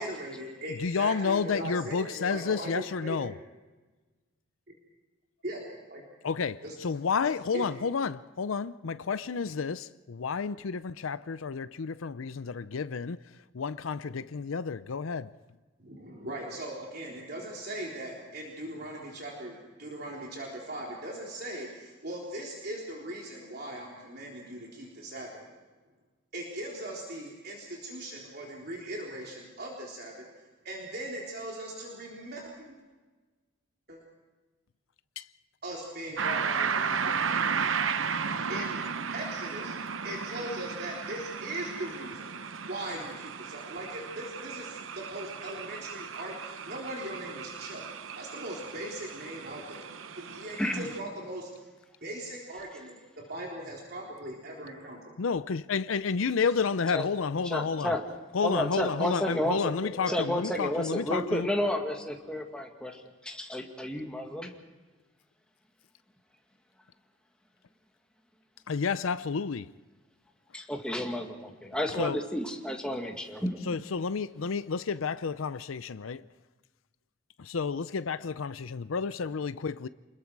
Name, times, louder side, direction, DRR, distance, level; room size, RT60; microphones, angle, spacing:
voice 1, 0.0-3.3 5.4-5.6 5.9-6.0 6.6-6.8 7.5-7.6 15.8-25.5 26.3-30.3 30.6-32.4 33.9-34.0 35.6-37.5 38.5-38.8 39.1-39.8 40.0-42.3 42.7-47.8 48.1-49.9 50.1-51.5 52.0-53.0 53.3-55.2 59.8-60.5, right 1 dB, 50° right, 3.8 m, -39 dB
voice 2, 0.7-3.3 6.2-13.2 13.5-15.4 35.2-35.3 55.2-58.0 58.3-61.5 68.7-69.7 71.9-72.2 73.6-76.2 77.4-79.9, left 5 dB, 90° left, 0.6 m, -31 dB
sound 1, 36.2-51.0, right 6 dB, 80° right, 0.9 m, -34 dB
voice 3, 57.5-58.0 58.4-59.7 60.1-64.5 70.5-73.7, left 1 dB, 5° left, 2.0 m, -31 dB
27.5 x 21.5 x 4.7 m
head